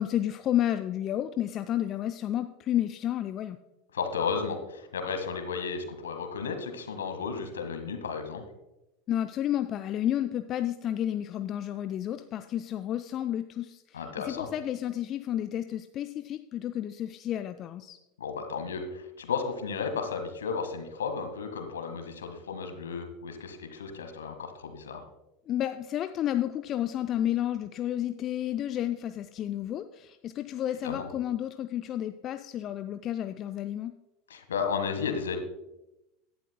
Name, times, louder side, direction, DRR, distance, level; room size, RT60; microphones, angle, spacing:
voice 1, 0.0-3.6 9.1-18.0 25.5-33.9, left 11 dB, 35° left, 9 dB, 0.4 m, -31 dB
voice 2, 3.9-8.4 13.9-14.5 18.2-25.0 30.8-31.1 34.3-35.4, left 5 dB, 70° left, 6 dB, 1.6 m, -33 dB
16.5 x 11.0 x 2.2 m, 0.95 s
figure-of-eight pair, 80°, 0 cm